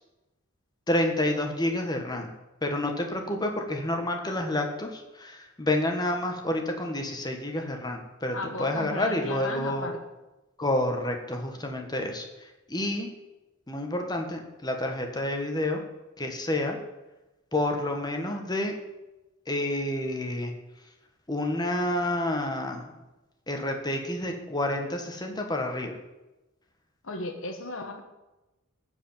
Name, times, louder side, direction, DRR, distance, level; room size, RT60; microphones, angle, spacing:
voice 1, 0.9-2.3 2.6-9.9 10.6-13.1 13.7-15.8 16.2-16.8 17.5-18.7 19.5-20.5 21.3-22.9 23.5-25.9, left 1 dB, 20° left, 3 dB, 1.7 m, -29 dB
voice 2, 8.3-10.0 27.0-28.0, left 2 dB, 70° left, 4 dB, 1.4 m, -35 dB
15.5 x 5.3 x 8.9 m, 1.0 s
head